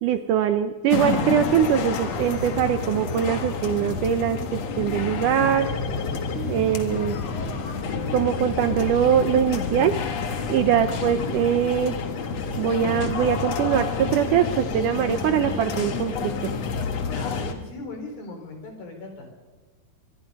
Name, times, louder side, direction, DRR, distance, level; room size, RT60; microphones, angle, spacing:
voice 1, 0.0-5.7 6.3-7.2 8.1-9.9 10.5-11.9 12.6-16.3, right 9 dB, 75° right, 9 dB, 2.0 m, -22 dB
sound 1, 0.9-17.5, left 5 dB, 55° left, 2.2 m, -29 dB
voice 2, 17.1-19.3, left 3 dB, 70° left, 4 dB, 5.7 m, -38 dB
24.5 x 22.0 x 5.4 m, 1.1 s
omnidirectional pair, 4.4 m